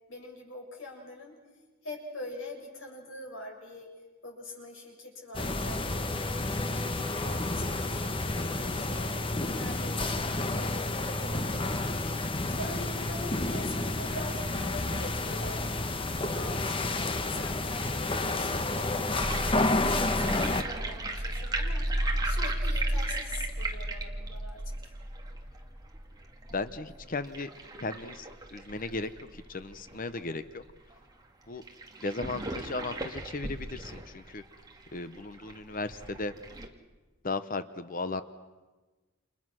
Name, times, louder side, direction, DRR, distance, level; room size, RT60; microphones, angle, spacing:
voice 1, 0.1-1.4 1.8-3.9 4.2-9.1 9.5-11.9 12.4-16.0 16.3-21.9 22.2-24.9, left 2 dB, 75° left, 0 dB, 7.6 m, -44 dB
sound 1, 5.3-20.6, left 2 dB, 25° left, 1.1 m, -30 dB
sound 2, 19.2-30.2 30.6-30.7 30.9-31.0 31.6-36.7, right 1 dB, 20° right, 2.2 m, -34 dB
voice 2, 26.5-27.5 27.8-30.6 31.5-31.6 32.0-34.4 34.9-36.3 37.2-38.2, left 3 dB, 45° left, 11 dB, 0.9 m, -36 dB
29.5 x 28.5 x 6.4 m, 1.3 s
head